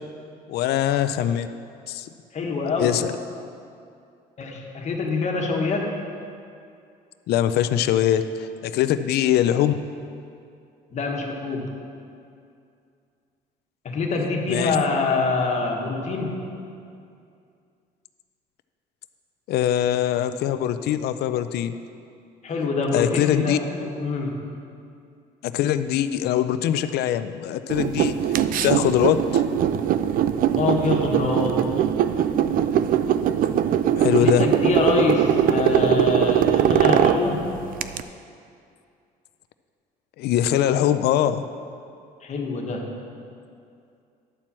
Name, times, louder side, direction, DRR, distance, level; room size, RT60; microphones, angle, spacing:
voice 1, 0.5-1.5 1.9-2.1 2.8-3.1 7.3-9.7 14.5-14.8 19.5-21.8 22.9-23.6 25.4-28.1 28.6-29.4 34.0-34.5 40.2-41.4, left 11 dB, 70° left, 11 dB, 0.5 m, -22 dB
voice 2, 2.3-2.9 4.4-5.9 10.9-11.7 13.8-16.5 22.4-24.5 30.6-31.7 34.2-37.5 42.2-42.9, left 3 dB, 45° left, 1 dB, 1.5 m, -25 dB
sound 1, 27.7-38.0, right 10 dB, 55° right, 0.4 m, -21 dB
11.0 x 4.5 x 7.4 m, 2.4 s
cardioid pair, 110°, 17 cm